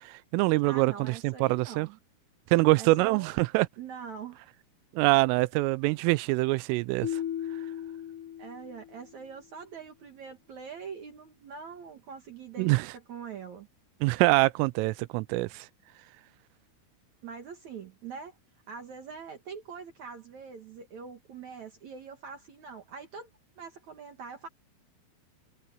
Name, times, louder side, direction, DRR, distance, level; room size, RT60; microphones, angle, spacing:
voice 1, 0.0-1.9 2.5-3.7 4.9-7.2 12.6-12.9 14.0-15.7, right 22 dB, 90° right, 3.2 m, -25 dB
voice 2, 0.6-2.0 2.8-3.3 3.8-4.5 8.4-13.7 17.2-18.4 18.7-23.3 23.6-24.5, right 6 dB, 70° right, 1.8 m, -43 dB
sound 1, 7.0-9.2, left 10 dB, 80° left, 1.8 m, -36 dB
omnidirectional pair, 5.7 m